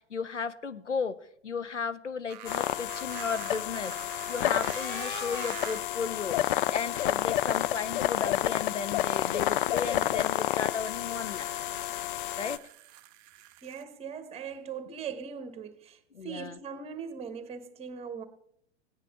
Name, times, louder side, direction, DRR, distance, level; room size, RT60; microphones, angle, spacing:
voice 1, 0.0-11.5 12.4-12.7 16.1-16.6, left 5 dB, 85° left, 0.8 m, -35 dB
sound 1, 2.3-6.0 7.0-7.1 11.2-13.8, right 14 dB, 40° right, 0.6 m, -45 dB
sound 2, 2.5-12.6, left 13 dB, 50° left, 0.5 m, -30 dB
voice 2, 13.6-18.2, right 6 dB, 15° right, 1.3 m, -40 dB
17.0 x 9.9 x 3.6 m
figure-of-eight pair, 95°, 35 cm